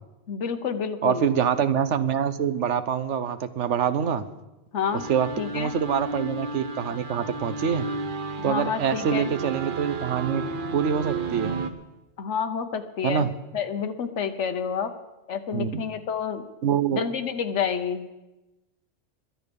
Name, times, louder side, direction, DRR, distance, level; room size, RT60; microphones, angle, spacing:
voice 1, 0.3-1.2 4.7-5.0 5.4-5.7 8.4-9.3 12.2-13.3 13.5-14.9 15.3-16.4 16.9-18.1, left 7 dB, 70° left, 7 dB, 1.3 m, -29 dB
voice 2, 1.0-4.3 4.9-5.3 5.5-7.9 8.4-10.4 10.7-11.6 13.0-13.3 15.5-15.8 16.6-17.0, right 8 dB, 70° right, 12 dB, 1.1 m, -25 dB
sound 1, 4.9-11.7, right 3 dB, 45° right, 1.0 m, -33 dB
22.5 x 8.9 x 5.2 m, 1.0 s
omnidirectional pair, 1.3 m